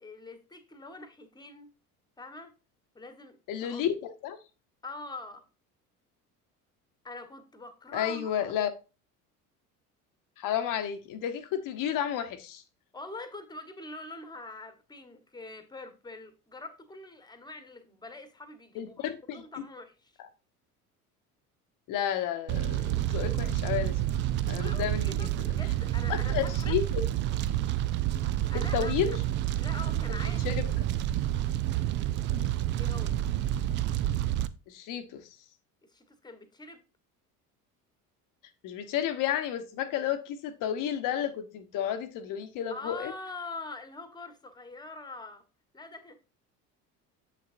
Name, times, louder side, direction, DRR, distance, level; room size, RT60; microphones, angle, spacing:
voice 1, 0.0-1.7 2.2-2.5 2.9-3.8 4.8-5.4 7.0-8.6 12.9-20.2 24.5-26.7 28.5-29.2 29.6-30.5 32.8-33.2 35.8-36.8 42.7-45.4 45.7-46.2, left 3 dB, 10° left, 1.2 m, -44 dB
voice 2, 3.5-4.4 7.9-8.7 10.4-12.6 18.7-19.4 21.9-24.0 24.5-25.5 26.3-27.0 28.7-29.2 30.4-30.7 34.7-35.3 38.6-43.1, left 9 dB, 45° left, 1.0 m, -31 dB
Fire, 22.5-34.5, right 13 dB, 30° right, 0.3 m, -29 dB
7.6 x 6.6 x 2.5 m
figure-of-eight pair, 65°, 45 cm